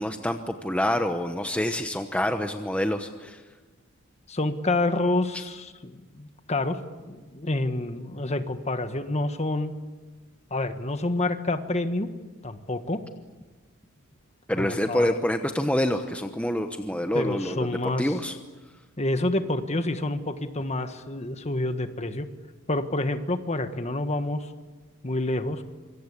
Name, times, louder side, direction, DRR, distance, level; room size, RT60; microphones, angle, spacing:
voice 1, 0.0-3.4 14.5-17.7 18.0-18.4, left 1 dB, 5° left, 6 dB, 1.0 m, -27 dB
voice 2, 4.3-9.7 10.5-12.1 12.4-13.0 14.6-15.1 17.1-18.1 19.0-22.3 22.7-24.5 25.0-25.6, left 2 dB, 30° left, 9 dB, 1.5 m, -28 dB
26.0 x 24.5 x 8.4 m, 1.3 s
head